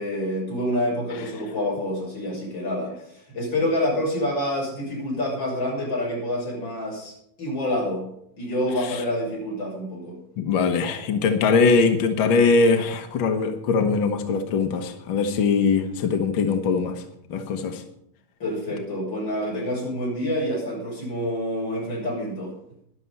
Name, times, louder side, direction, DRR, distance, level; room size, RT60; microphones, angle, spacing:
voice 1, 0.0-8.0 8.4-10.2 18.4-22.5, left 1 dB, 30° left, -3 dB, 7.1 m, -27 dB
voice 2, 10.4-17.0 17.3-17.8, left 4 dB, 75° left, 6 dB, 1.1 m, -21 dB
12.5 x 11.5 x 5.5 m, 0.73 s
omnidirectional pair, 4.0 m